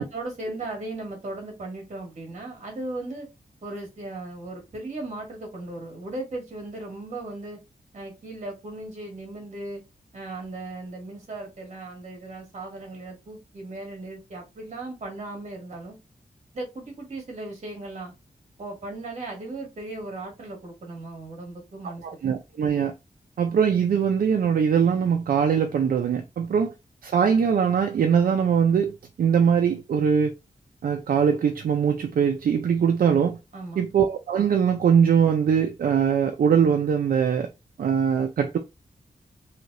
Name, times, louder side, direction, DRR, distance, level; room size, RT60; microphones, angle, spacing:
voice 1, 0.0-3.3 3.6-7.6 7.9-9.8 10.1-16.0 16.5-18.1 18.6-22.0 33.5-33.8, right 2 dB, 50° right, 1.6 m, -37 dB
voice 2, 22.0-22.9 23.4-26.7 27.0-30.3 30.8-33.4 33.8-37.5 37.8-38.6, right 7 dB, 70° right, 0.5 m, -22 dB
3.3 x 2.8 x 2.6 m
wide cardioid pair, 165°, 15 cm